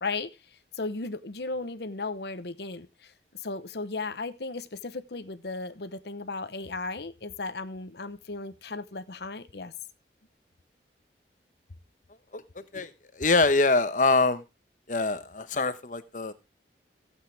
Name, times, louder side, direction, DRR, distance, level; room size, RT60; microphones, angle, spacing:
voice 1, 0.0-9.7, left 3 dB, 65° left, 0.9 m, -36 dB
voice 2, 13.2-14.4 14.9-16.3, left 3 dB, 45° left, 1.1 m, -24 dB
15.5 x 8.3 x 3.4 m
head